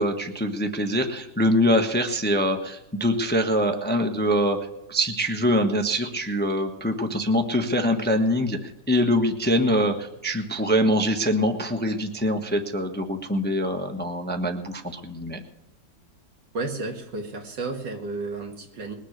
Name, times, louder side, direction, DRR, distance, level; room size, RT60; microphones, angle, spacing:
voice 1, 0.0-4.6 4.9-15.4, equal, 5° left, 5 dB, 0.9 m, -24 dB
voice 2, 16.5-18.9, right 3 dB, 70° right, 3 dB, 2.6 m, -32 dB
21.0 x 7.4 x 6.5 m, 0.90 s
omnidirectional pair, 2.0 m